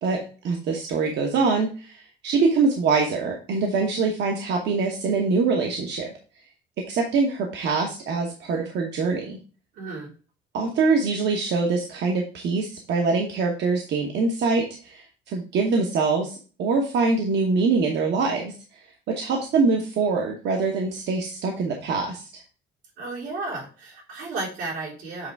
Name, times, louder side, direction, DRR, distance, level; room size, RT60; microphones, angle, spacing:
voice 1, 0.0-6.1 6.9-9.4 10.5-18.5 19.1-22.3, right 4 dB, 60° right, 1 dB, 1.1 m, -24 dB
voice 2, 9.7-10.1 23.0-25.3, right 3 dB, 85° right, -4 dB, 3.7 m, -33 dB
7.8 x 3.3 x 4.6 m, 0.37 s
cardioid pair, 165°, 20 cm